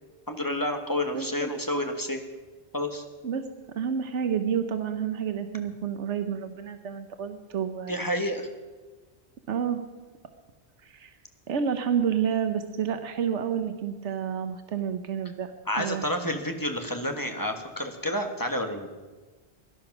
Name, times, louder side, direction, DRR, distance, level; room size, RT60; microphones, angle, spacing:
voice 1, 0.3-2.2 2.7-3.0 7.9-8.5 15.7-18.9, left 1 dB, 20° left, 5 dB, 1.3 m, -29 dB
voice 2, 1.1-1.5 3.2-3.4 3.7-8.0 9.5-9.8 10.8-11.1 11.5-15.5 15.8-16.1, right 8 dB, 90° right, 8 dB, 1.2 m, -29 dB
17.5 x 11.5 x 6.0 m, 1.3 s
omnidirectional pair, 1.2 m